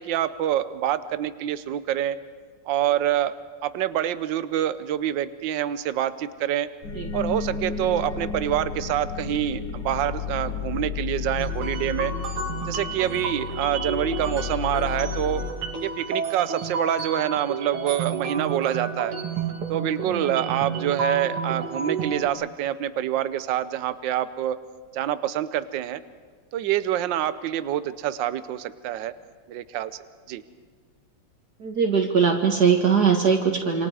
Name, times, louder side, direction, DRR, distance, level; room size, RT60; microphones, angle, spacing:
voice 1, 0.0-2.2 2.7-3.3 3.6-6.7 7.1-12.1 12.7-15.4 15.8-19.1 19.7-24.6 24.9-26.0 26.5-29.1 29.5-30.0 30.3-30.4, right 11 dB, 65° right, 13 dB, 1.5 m, -26 dB
sound 1, 6.8-15.5, left 6 dB, 50° left, 2.6 m, -32 dB
sound 2, 11.4-22.3, right 5 dB, 90° right, 2.9 m, -31 dB
voice 2, 20.1-20.5 31.6-33.9, right 6 dB, 50° right, 3 dB, 2.2 m, -21 dB
27.5 x 27.0 x 4.9 m, 1.5 s
omnidirectional pair, 2.3 m